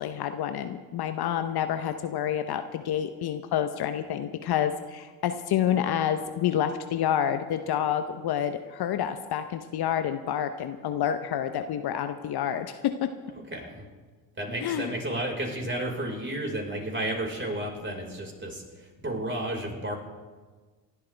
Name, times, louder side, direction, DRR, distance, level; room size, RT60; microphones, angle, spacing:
voice 1, 0.0-13.1 14.6-14.9, left 9 dB, 50° left, 9 dB, 1.0 m, -28 dB
voice 2, 13.3-13.8 14.4-20.0, right 1 dB, 25° right, 1 dB, 4.9 m, -32 dB
28.0 x 12.0 x 3.5 m, 1.4 s
hypercardioid pair, 60°, 49 cm